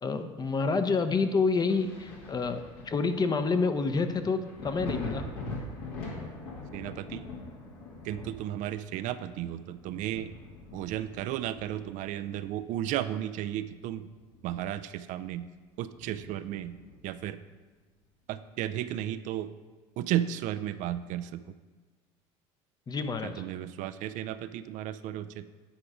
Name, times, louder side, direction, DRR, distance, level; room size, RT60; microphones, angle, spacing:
voice 1, 0.0-5.2 22.9-23.3, left 4 dB, 25° left, 9 dB, 0.7 m, -28 dB
Thunder, 1.7-13.0 13.4-14.9 15.3-15.4 15.9-17.2 18.7-18.8, left 2 dB, 70° left, 1.9 m, -43 dB
voice 2, 6.7-7.2 8.0-10.3 10.7-14.1 14.4-15.5 15.8-16.8 17.0-17.4 18.3-19.5 20.0-21.4 23.2-25.5, right 12 dB, 60° right, 12 dB, 0.4 m, -34 dB
9.0 x 4.8 x 4.8 m, 1.3 s
hypercardioid pair, 75°, 15 cm